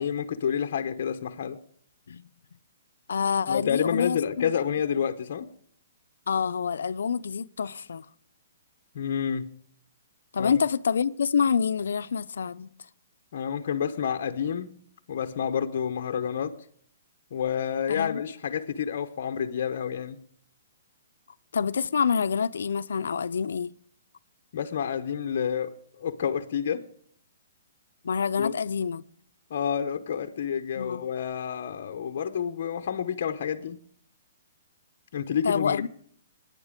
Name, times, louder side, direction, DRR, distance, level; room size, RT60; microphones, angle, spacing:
voice 1, 0.0-1.6 3.5-5.5 8.9-9.5 10.4-10.6 13.3-14.8 15.1-16.6 17.3-20.2 24.5-26.8 28.4-28.5 29.5-33.8 35.1-35.9, left 8 dB, 45° left, 0.9 m, -29 dB
voice 2, 3.1-4.5 6.3-8.1 10.3-12.7 17.9-18.2 21.5-23.7 28.0-29.0 30.8-31.0 35.4-35.9, left 6 dB, 85° left, 0.6 m, -27 dB
22.5 x 9.8 x 5.1 m
hypercardioid pair, 175°, 0 cm